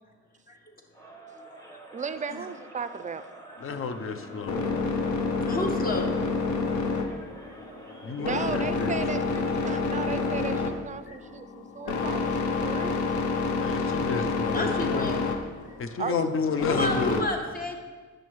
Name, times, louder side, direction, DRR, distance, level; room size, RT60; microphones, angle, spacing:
Crowd, 0.9-9.0, right 1 dB, 10° left, 1.4 m, -48 dB
voice 1, 1.9-3.3 8.2-13.1 16.0-16.2, right 5 dB, 25° right, 11 dB, 0.4 m, -35 dB
sound 1, 3.6-17.2, left 4 dB, 70° left, 0.9 m, -29 dB
voice 2, 3.6-4.6 8.0-8.9 13.5-15.1 15.8-17.3, left 5 dB, 45° left, 9 dB, 0.7 m, -31 dB
voice 3, 5.4-6.1 7.0-7.1 11.1-11.2 11.9-12.0 14.5-15.3 15.7-15.8 16.6-17.8, left 1 dB, 30° left, 3 dB, 1.2 m, -32 dB
10.0 x 6.4 x 3.1 m, 1.4 s
cardioid pair, 90°, 30 cm